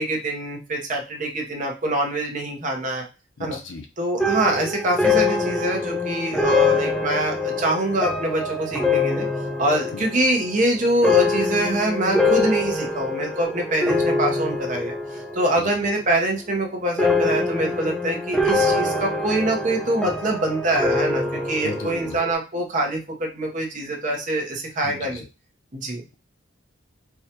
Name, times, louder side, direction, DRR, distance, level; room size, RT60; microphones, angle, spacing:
voice 1, 0.0-3.0 3.4-3.6 4.0-9.3 9.6-25.2 25.7-26.0, right 1 dB, 40° right, 1 dB, 0.9 m, -24 dB
voice 2, 3.4-3.9 9.9-10.0 15.6-15.7 21.6-22.2 24.8-25.2, left 3 dB, 80° left, 5 dB, 0.7 m, -35 dB
sound 1, 4.2-15.7 15.9-16.5 17.0-22.3, left 3 dB, 5° left, 0.4 m, -24 dB
4.7 x 2.4 x 2.8 m, 0.31 s
head